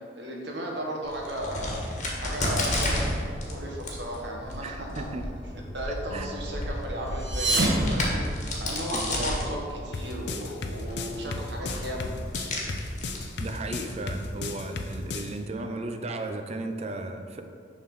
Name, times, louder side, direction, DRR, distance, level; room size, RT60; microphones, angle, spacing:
voice 1, 0.1-1.8 2.2-3.0 3.4-5.1 5.7-8.2 8.6-12.1, equal, 65° right, -1 dB, 1.3 m, -35 dB
Crack, 1.0-14.3, left 1 dB, 40° left, 1.4 m, -33 dB
voice 2, 4.6-5.3 6.1-6.4 8.9-9.3 13.4-17.4, right 2 dB, 35° right, 6 dB, 0.5 m, -35 dB
sound 1, 7.1-9.0, right 1 dB, 85° right, 1.3 m, -27 dB
sound 2, 9.9-15.3, left 3 dB, 65° left, 0.6 m, -34 dB
6.9 x 3.8 x 6.1 m, 2.3 s
head